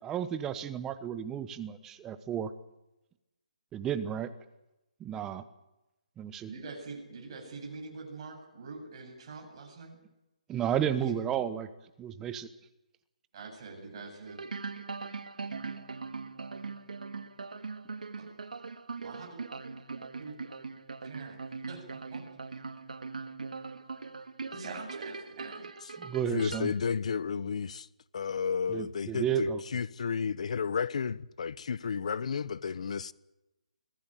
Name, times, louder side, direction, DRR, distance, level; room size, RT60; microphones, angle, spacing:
voice 1, 0.0-2.5 3.7-4.3 5.0-5.4 6.2-6.5 10.5-11.7 12.0-12.5 26.0-26.7 28.7-29.8, right 8 dB, 10° right, 1.0 m, -32 dB
voice 2, 6.5-10.0 10.9-11.1 13.3-14.5 18.2-18.3 19.0-19.4 20.2-20.4 21.0-21.4 21.7-22.2 22.5-22.6 24.5-25.7, right 4 dB, 40° right, 8.0 m, -44 dB
sound 1, 14.3-26.6, right 4 dB, 90° right, 1.9 m, -41 dB
voice 3, 26.3-27.9 28.1-33.1, left 6 dB, 60° left, 1.0 m, -32 dB
24.5 x 16.5 x 9.1 m
hypercardioid pair, 165°, 4 cm